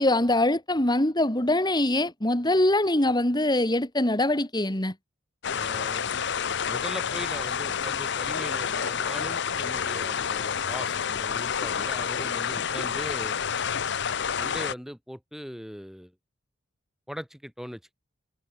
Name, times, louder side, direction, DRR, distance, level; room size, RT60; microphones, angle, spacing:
voice 1, 0.0-4.9, left 1 dB, 20° left, 2.7 m, -23 dB
sound 1, 5.4-14.7, left 7 dB, 60° left, 0.8 m, -29 dB
voice 2, 5.5-6.0 6.7-13.4 14.4-16.1 17.1-17.9, equal, ahead, 4.2 m, -40 dB
head